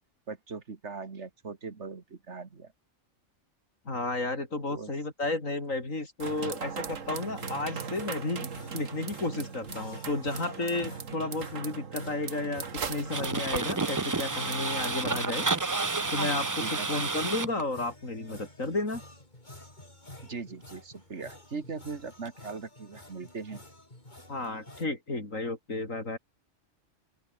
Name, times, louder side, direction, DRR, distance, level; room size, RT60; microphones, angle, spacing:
voice 1, 0.3-2.7 4.7-4.9 16.6-17.1 20.2-23.6, right 4 dB, 60° right, 2.2 m, -40 dB
voice 2, 3.8-15.5 16.1-19.0 24.3-26.2, left 2 dB, 90° left, 5.2 m, -33 dB
sound 1, 6.2-15.7, right 6 dB, 75° right, 2.0 m, -39 dB
sound 2, 7.2-24.9, left 1 dB, 35° left, 5.0 m, -51 dB
sound 3, 13.1-17.6 22.2-22.3, right 3 dB, 20° right, 0.5 m, -30 dB
open air
omnidirectional pair, 1.3 m